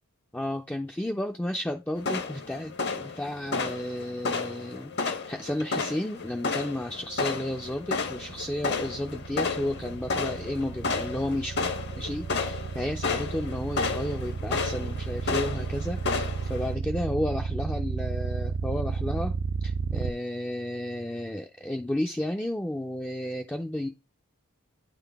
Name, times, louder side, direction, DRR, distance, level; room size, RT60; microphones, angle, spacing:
voice 1, 0.3-11.6 12.0-19.3 19.6-23.9, left 1 dB, 5° left, 0.3 m, -32 dB
sound 1, 2.0-16.7, left 4 dB, 50° left, 0.9 m, -32 dB
sound 2, 6.8-20.1, right 5 dB, 65° right, 0.4 m, -32 dB
8.9 x 3.8 x 3.4 m
head